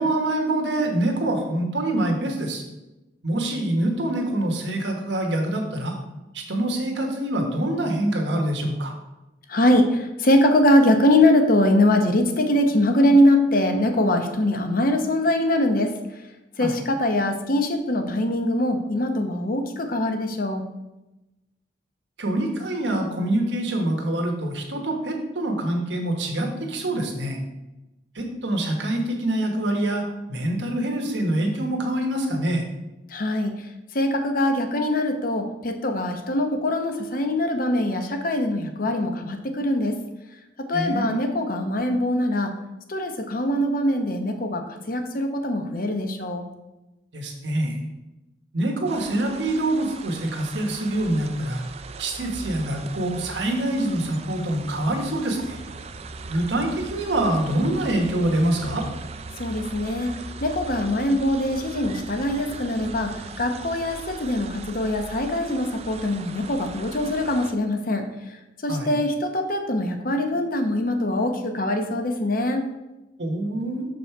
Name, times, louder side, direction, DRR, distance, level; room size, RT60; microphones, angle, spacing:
voice 1, 0.0-2.6 3.2-6.0 6.3-8.9 16.6-16.7 22.2-27.4 28.1-30.0 30.3-32.6 40.7-41.2 47.1-47.8 48.5-51.6 52.0-55.6 56.3-58.8 68.7-69.0 73.2-73.9, right 1 dB, 80° right, 2 dB, 1.4 m, -25 dB
voice 2, 9.5-15.9 16.6-20.6 33.1-33.5 33.9-40.0 40.7-42.5 42.9-46.4 59.4-60.1 60.4-68.1 68.6-72.6, left 1 dB, 50° left, 6 dB, 0.8 m, -22 dB
sound 1, 48.9-67.5, right 4 dB, 35° right, 0.4 m, -39 dB
6.6 x 5.3 x 4.5 m, 0.99 s
head